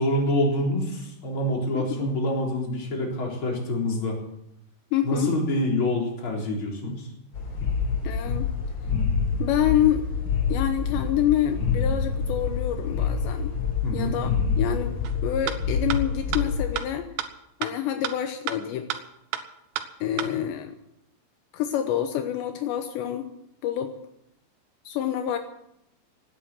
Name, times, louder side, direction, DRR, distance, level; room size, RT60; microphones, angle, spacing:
voice 1, 0.0-4.2 5.0-7.1 13.8-14.1, left 1 dB, 30° left, -1 dB, 4.2 m, -26 dB
voice 2, 1.7-2.1 4.9-5.3 8.0-8.5 9.4-10.0 10.5-13.5 13.9-14.3 14.6-17.1 17.6-18.9 20.0-20.8 21.5-23.3 23.6-23.9 24.9-25.4, left 11 dB, 80° left, 7 dB, 3.1 m, -27 dB
sound 1, 7.3-16.8, left 5 dB, 50° left, 1.3 m, -27 dB
sound 2, 15.0-15.1 15.5-15.6 15.9-16.0 16.3-16.4 16.8-16.9 17.2-17.3 17.6-17.7 18.0-18.1 18.5-18.6 18.9-19.0 19.3-19.4 19.8-19.9 20.2-20.3, right 11 dB, 75° right, 3.0 m, -29 dB
18.0 x 10.0 x 7.6 m, 0.80 s
omnidirectional pair, 5.2 m